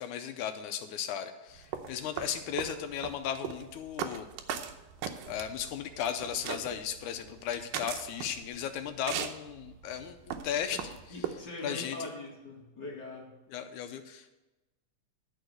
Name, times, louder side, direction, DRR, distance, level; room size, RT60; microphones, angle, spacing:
voice 1, 0.0-4.3 5.3-10.2 10.4-10.8 11.6-12.0 13.5-14.3, left 9 dB, 75° left, 8 dB, 1.9 m, -36 dB
sound 1, 1.6-11.4, right 9 dB, 90° right, 2.4 m, -39 dB
voice 2, 11.1-13.3, left 2 dB, 35° left, -3 dB, 2.4 m, -42 dB
11.0 x 5.0 x 7.7 m, 1.1 s
omnidirectional pair, 3.8 m